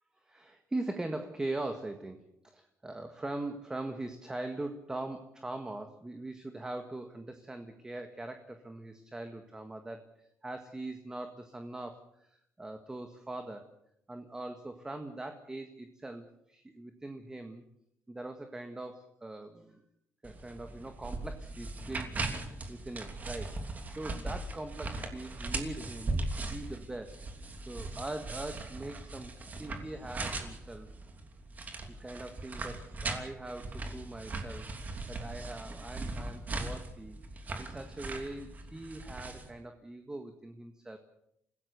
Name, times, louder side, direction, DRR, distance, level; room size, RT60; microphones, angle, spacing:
voice 1, 0.2-2.2 2.5-12.3 12.6-13.7 14.1-17.6 18.1-19.8 20.2-23.5 23.9-27.3 27.7-29.3 29.6-30.9 31.9-41.0, right 2 dB, 10° right, 6 dB, 1.7 m, -41 dB
sound 1, 20.2-39.5, right 2 dB, 30° right, 3.0 m, -39 dB
28.0 x 16.5 x 7.0 m, 0.77 s
cardioid pair, 125°, 5 cm